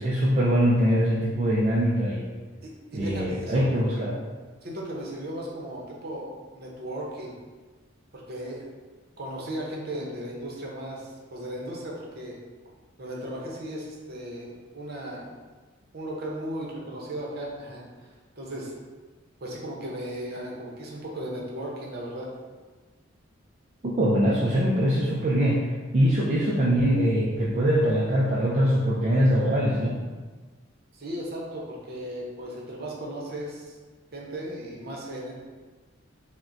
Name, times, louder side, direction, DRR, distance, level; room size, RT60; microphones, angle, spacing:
voice 1, 0.0-2.3 2.9-4.2 23.8-25.6 25.9-30.0, equal, 35° right, -6 dB, 0.4 m, -23 dB
voice 2, 2.6-3.9 4.6-7.3 8.1-8.6 9.2-12.4 13.0-15.3 15.9-18.7 19.4-22.3 30.9-33.7 34.1-35.3, right 1 dB, 50° right, -3 dB, 0.8 m, -36 dB
5.8 x 2.1 x 2.6 m, 1.3 s
head